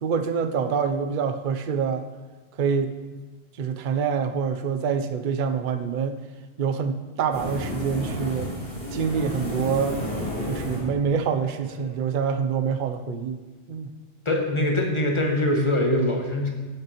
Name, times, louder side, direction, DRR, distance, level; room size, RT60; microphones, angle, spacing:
voice 1, 0.0-2.1 2.6-2.9 3.6-6.2 6.6-8.5 8.9-10.0 10.5-13.4 13.7-13.9, right 6 dB, 55° right, 8 dB, 0.6 m, -26 dB
sound 1, 7.3-11.9, equal, 10° left, 2.9 m, -32 dB
voice 2, 14.2-16.5, left 1 dB, 25° left, 1 dB, 1.2 m, -23 dB
15.5 x 6.6 x 3.0 m, 1.3 s
omnidirectional pair, 1.2 m